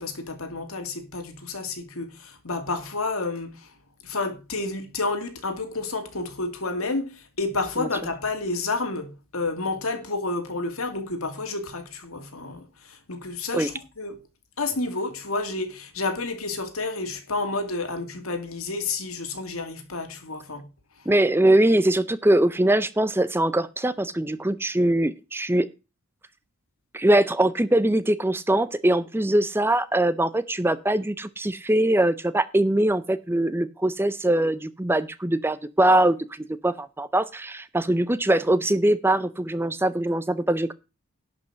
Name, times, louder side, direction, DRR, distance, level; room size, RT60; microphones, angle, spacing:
voice 1, 0.0-3.7 4.0-14.2 14.6-20.6, left 3 dB, 80° left, 2.3 m, -30 dB
voice 2, 21.1-25.7 26.9-40.7, right 1 dB, 10° right, 0.5 m, -22 dB
11.5 x 5.4 x 7.3 m
head